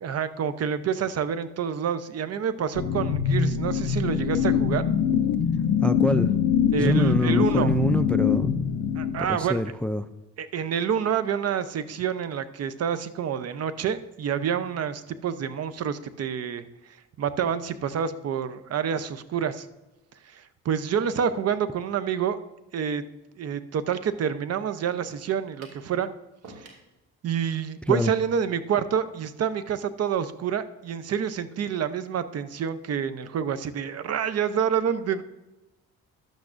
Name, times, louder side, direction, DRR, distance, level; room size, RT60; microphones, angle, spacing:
voice 1, 0.0-4.9 6.7-7.8 9.0-9.6 10.4-16.7 17.2-19.7 20.3-22.4 22.7-23.0 23.3-26.1 26.6-26.7 27.2-35.2, right 8 dB, 55° right, 13 dB, 0.7 m, -28 dB
sound 1, 2.7-9.5, left 8 dB, 85° left, 0.6 m, -24 dB
voice 2, 5.8-6.3 6.8-8.5 9.2-10.1 27.9-28.1, left 1 dB, 5° left, 12 dB, 0.3 m, -25 dB
sound 2, 25.6-25.9 26.4-26.9, right 2 dB, 70° right, 2.3 m, -47 dB
12.0 x 8.3 x 2.5 m, 1.0 s
cardioid pair, 90°, 30 cm